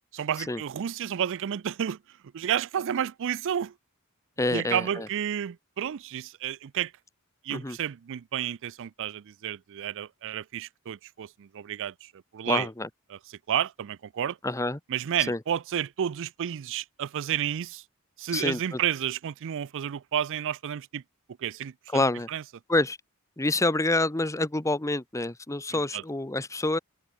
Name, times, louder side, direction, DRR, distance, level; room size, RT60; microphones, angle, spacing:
voice 1, 0.1-2.0 2.3-3.7 4.5-6.9 7.4-12.7 13.1-13.2 13.5-14.4 14.9-17.8 18.2-21.0 21.4-22.4 25.7-26.0, right 9 dB, 60° right, 0.4 m, -31 dB
voice 2, 4.4-5.1 7.5-7.8 12.5-12.9 14.4-14.8 15.3-15.4 18.3-18.8 21.9-22.3 22.7-23.0 23.4-26.8, left 2 dB, 15° left, 0.9 m, -27 dB
open air
head